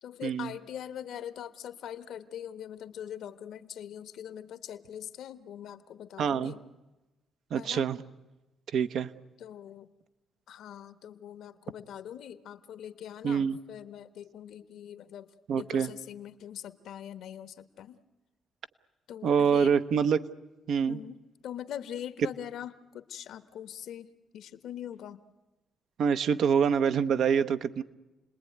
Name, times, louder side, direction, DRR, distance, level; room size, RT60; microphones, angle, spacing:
voice 1, 0.0-6.6 7.5-7.9 9.4-9.9 10.5-18.0 19.1-19.7 20.9-25.2, left 10 dB, 75° left, 11 dB, 1.2 m, -42 dB
voice 2, 6.2-6.5 7.5-8.0 8.7-9.1 13.2-13.6 15.5-15.9 19.2-20.2 20.7-21.0 26.0-27.8, right 7 dB, 70° right, 11 dB, 0.9 m, -25 dB
29.5 x 20.0 x 9.4 m, 1.1 s
cardioid pair, 90°, 0 cm